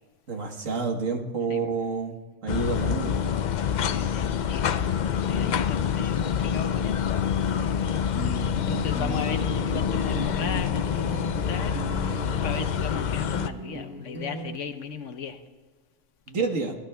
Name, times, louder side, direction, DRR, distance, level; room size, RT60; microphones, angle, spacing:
voice 1, 0.3-3.2 16.3-16.8, right 4 dB, 70° right, 1.7 m, -29 dB
sound 1, 2.5-13.5, left 8 dB, 85° left, 0.4 m, -26 dB
voice 2, 3.5-7.2 8.3-11.7 12.4-15.4, left 6 dB, 65° left, 1.1 m, -36 dB
sound 2, 8.1-14.6, right 3 dB, 10° right, 0.7 m, -37 dB
23.5 x 17.0 x 2.3 m
omnidirectional pair, 1.4 m